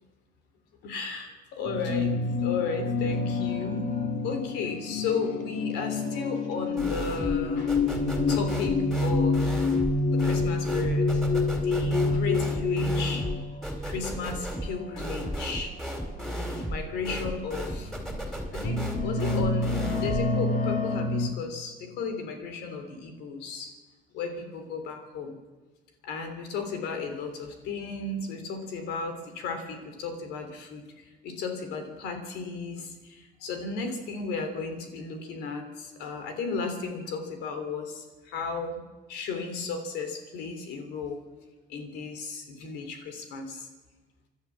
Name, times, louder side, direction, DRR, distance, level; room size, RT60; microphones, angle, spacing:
voice 1, 0.8-3.9 4.2-7.7 8.3-9.6 10.1-11.3 11.6-13.5 13.8-15.7 16.2-17.9 18.5-23.7 24.1-25.4 26.0-38.8 39.1-41.2 41.7-43.7, left 4 dB, 90° left, 6 dB, 3.3 m, -34 dB
sound 1, 1.6-13.9 14.7-15.0 16.2-16.3 16.9-17.1 17.8-21.3, left 3 dB, 50° left, 2.4 m, -28 dB
sound 2, 6.8-7.4 7.7-20.3, equal, ahead, 4.1 m, -34 dB
29.5 x 12.0 x 7.4 m, 1.2 s
cardioid pair, 110°, 17 cm